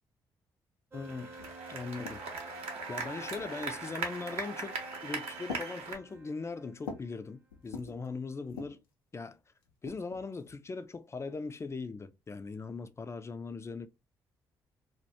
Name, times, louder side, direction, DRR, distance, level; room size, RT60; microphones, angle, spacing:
voice 1, 0.9-1.3 1.7-2.2 2.9-8.8 9.1-9.4 9.8-13.9, left 4 dB, 25° left, 0.3 m, -40 dB
sound 1, 0.9-7.3, right 1 dB, 20° right, 0.6 m, -52 dB
sound 2, 1.0-6.0, right 4 dB, 65° right, 0.7 m, -39 dB
sound 3, 1.4-2.5 3.3-3.8 4.7-5.0 5.5-7.2 7.5-8.1 8.5-8.9 9.6-10.6, left 5 dB, 90° left, 0.4 m, -46 dB
2.2 x 2.1 x 2.7 m
hypercardioid pair, 45°, 11 cm